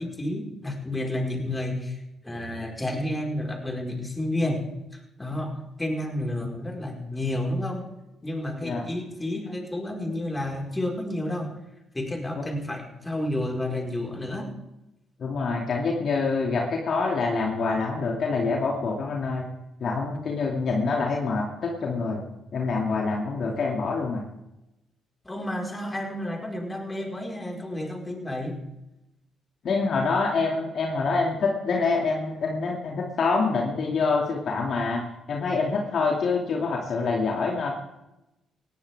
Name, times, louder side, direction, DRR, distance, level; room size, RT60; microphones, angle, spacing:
voice 1, 0.0-2.0 2.2-4.6 4.9-7.9 8.2-11.5 11.9-14.5 25.2-28.6, left 1 dB, 15° left, 1 dB, 5.1 m, -30 dB
voice 2, 15.2-19.5 19.8-22.2 22.5-24.2 29.6-35.0 35.3-37.7, left 4 dB, 55° left, -1 dB, 2.6 m, -26 dB
19.5 x 17.0 x 3.7 m, 0.92 s
hypercardioid pair, 45°, 0 cm